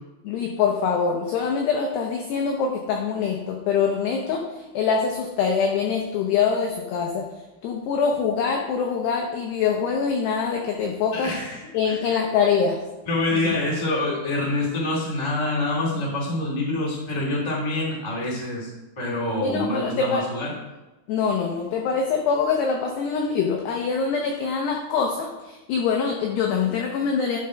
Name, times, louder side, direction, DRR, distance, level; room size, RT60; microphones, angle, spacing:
voice 1, 0.2-7.3 7.6-11.3 11.7-12.8 13.3-13.4 19.4-20.2 21.1-27.4, left 6 dB, 85° left, 1 dB, 2.4 m, -24 dB
voice 2, 11.1-12.1 13.0-18.7 18.9-20.5, left 2 dB, 30° left, -5 dB, 0.5 m, -26 dB
11.5 x 5.5 x 5.1 m, 1.1 s
omnidirectional pair, 5.9 m